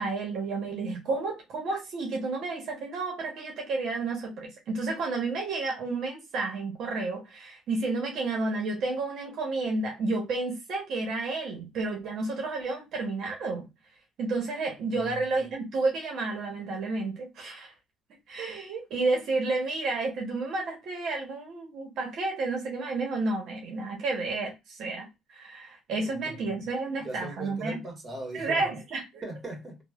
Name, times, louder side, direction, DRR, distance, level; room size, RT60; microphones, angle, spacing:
voice 1, 0.0-13.6 14.2-17.7 18.3-27.8 28.3-29.2, right 3 dB, 65° right, 0.9 m, -31 dB
voice 2, 26.0-26.4 27.0-28.6 29.2-29.8, right 2 dB, 30° right, 1.4 m, -39 dB
3.1 x 2.2 x 2.3 m
cardioid pair, 95°, 0 cm